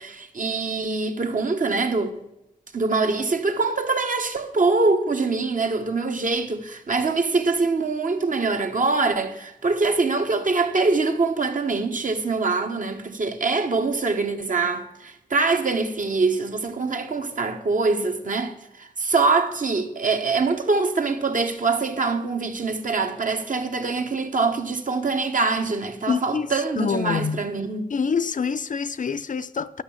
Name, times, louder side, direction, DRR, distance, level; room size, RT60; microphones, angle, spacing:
voice 1, 0.0-2.1 2.7-27.9, right 3 dB, 60° right, 1.3 m, -24 dB
voice 2, 26.1-26.5 26.8-27.4 27.9-29.8, left 6 dB, 60° left, 0.5 m, -26 dB
11.5 x 6.4 x 7.0 m
wide cardioid pair, 70°, 15 cm